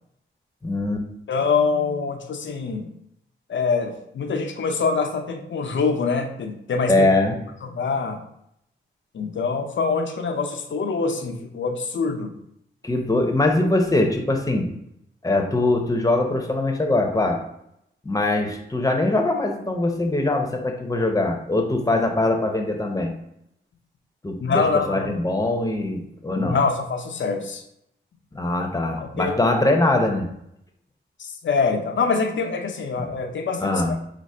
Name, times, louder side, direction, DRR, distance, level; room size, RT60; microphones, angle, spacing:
voice 1, 0.6-1.0 6.9-7.3 12.8-14.7 15.2-17.4 18.0-23.1 24.2-26.6 28.3-30.3 33.0-33.1 33.6-34.0, left 2 dB, 15° left, 3 dB, 0.8 m, -22 dB
voice 2, 1.3-2.9 3.5-7.1 7.6-8.2 9.1-12.3 24.4-25.2 26.4-27.6 29.0-29.6 31.2-34.0, left 4 dB, 65° left, 4 dB, 0.6 m, -25 dB
5.0 x 2.0 x 4.2 m, 0.77 s
cardioid pair, 55°, 21 cm